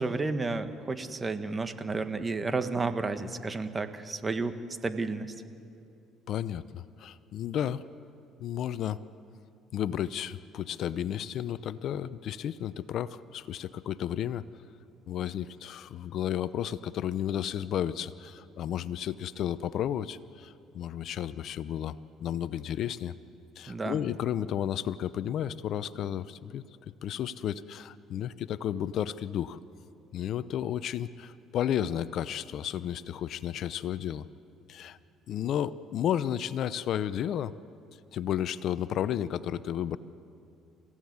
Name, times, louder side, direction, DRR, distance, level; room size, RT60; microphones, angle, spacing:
voice 1, 0.0-4.6 4.8-5.3 23.7-24.0, right 3 dB, 25° right, 10 dB, 1.6 m, -31 dB
voice 2, 6.3-7.8 8.4-9.0 9.7-14.4 15.1-23.1 23.6-26.7 27.0-29.6 30.1-34.2 34.7-35.0 35.3-37.5 38.1-40.0, left 10 dB, 60° left, 16 dB, 0.7 m, -32 dB
29.5 x 16.0 x 9.6 m, 2.6 s
supercardioid pair, 85°, 0 cm